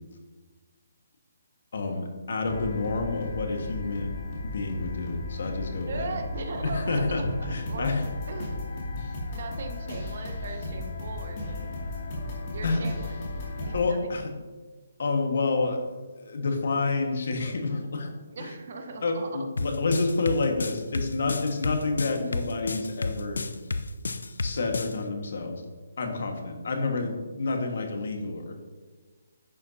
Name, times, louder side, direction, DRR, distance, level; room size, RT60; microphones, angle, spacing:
voice 1, 1.7-6.1 6.6-8.1 12.6-12.9 13.7-14.3 15.0-15.8 16.2-18.1 18.4-18.5 19.0-23.5 24.4-25.6 26.0-28.5, left 3 dB, 60° left, 3 dB, 1.5 m, -29 dB
sound 1, 2.4-13.8, left 2 dB, 30° left, 2.4 m, -35 dB
voice 2, 5.9-7.9 8.3-9.0 9.3-11.8 12.5-13.1 13.6-14.2 18.3-19.4, right 3 dB, 45° right, 6 dB, 1.0 m, -39 dB
sound 2, 19.6-24.9, left 3 dB, 90° left, 0.6 m, -31 dB
10.5 x 8.5 x 2.8 m, 1.4 s
hypercardioid pair, 165°, 0 cm